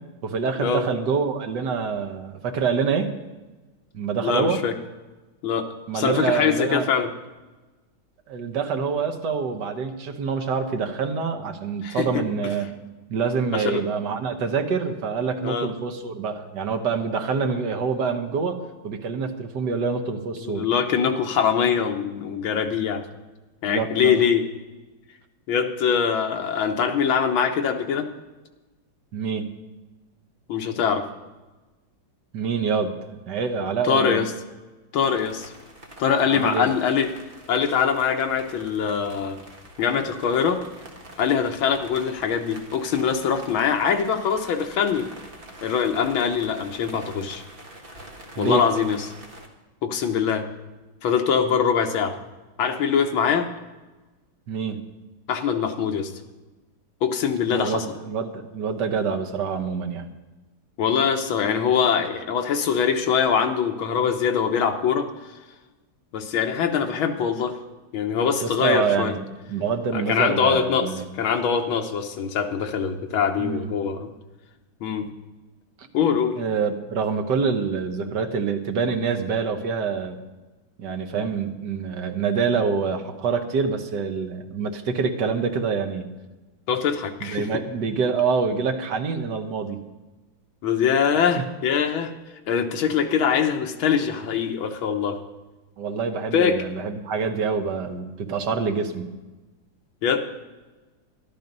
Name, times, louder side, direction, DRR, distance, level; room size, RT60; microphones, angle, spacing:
voice 1, 0.2-3.1 3.9-4.6 5.9-6.9 8.3-12.7 13.1-20.7 23.7-24.2 29.1-29.5 32.3-34.2 36.3-36.7 48.4-48.6 54.5-54.8 57.5-60.1 68.4-69.2 69.5-71.0 73.4-73.7 75.8-75.9 76.4-80.2 80.8-86.1 87.2-89.8 95.8-99.1, right 5 dB, 60° right, 5 dB, 1.6 m, -26 dB
voice 2, 4.2-4.7 5.4-5.7 5.9-7.1 11.8-12.2 13.5-13.8 15.4-15.7 20.4-23.0 23.6-24.4 25.5-28.1 30.5-31.1 33.8-34.2 34.9-35.5 36.0-37.1 37.5-39.4 39.8-40.6 41.2-45.1 45.6-47.4 48.4-49.0 49.8-50.5 51.0-52.2 52.6-53.5 55.3-56.1 57.0-57.9 60.8-65.1 66.1-67.6 67.9-69.1 69.9-70.9 71.2-74.1 74.8-75.0 75.9-76.4 86.7-87.5 90.6-92.1 92.5-95.2 96.3-96.6 100.0-100.2, left 7 dB, 75° left, 5 dB, 1.8 m, -23 dB
sound 1, 35.0-49.5, right 1 dB, 30° right, 1.6 m, -45 dB
12.5 x 12.0 x 5.3 m, 1.2 s
omnidirectional pair, 2.2 m